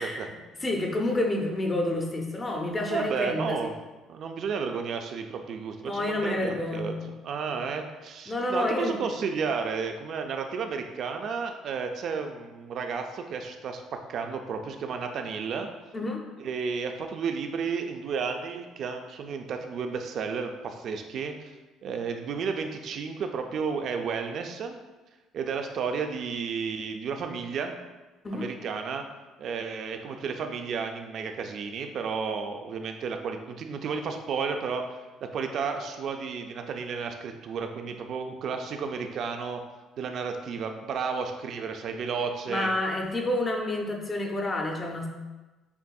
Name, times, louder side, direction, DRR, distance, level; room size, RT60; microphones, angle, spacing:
voice 1, 0.0-3.7 5.8-7.0 7.5-7.6 8.3-9.0 15.9-16.2 28.2-28.5 42.5-45.1, left 1 dB, 20° left, 1 dB, 0.6 m, -29 dB
voice 2, 2.9-3.7 4.1-15.7 16.4-21.5 21.8-24.8 25.3-27.8 28.3-29.1 29.4-35.0 35.2-39.6 40.0-42.7, right 5 dB, 55° right, 5 dB, 0.4 m, -32 dB
6.9 x 2.5 x 2.3 m, 1.2 s
cardioid pair, 110°, 0 cm